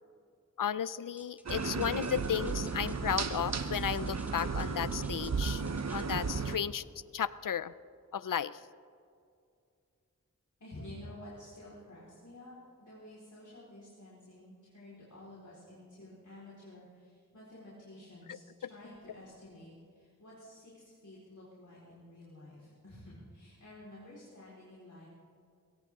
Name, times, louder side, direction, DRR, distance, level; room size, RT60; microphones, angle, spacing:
voice 1, 0.6-5.6 5.9-6.8 7.1-7.7 8.1-8.6 18.3-18.4, left 8 dB, 85° left, 17 dB, 0.5 m, -34 dB
sound 1, 1.2-6.3, equal, 5° right, 1.7 m, -56 dB
sound 2, 1.5-6.6, right 5 dB, 55° right, 0.8 m, -34 dB
voice 2, 10.6-12.5 12.8-25.1, left 1 dB, 70° left, -8 dB, 4.4 m, -51 dB
20.5 x 17.5 x 3.7 m, 2.4 s
wide cardioid pair, 50°, 32 cm